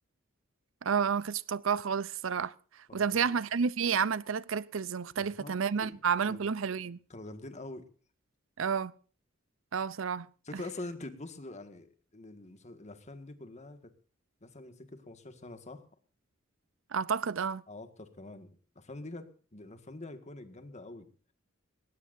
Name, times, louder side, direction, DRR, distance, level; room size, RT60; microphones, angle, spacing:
voice 1, 0.8-2.5 2.9-7.0 8.6-8.9 9.7-10.3 16.9-17.6, right 6 dB, 70° right, 0.6 m, -30 dB
voice 2, 2.9-3.4 5.2-6.4 7.1-7.9 10.4-13.9 14.4-15.9 17.7-21.1, left 2 dB, 35° left, 1.8 m, -45 dB
20.5 x 18.0 x 2.7 m
head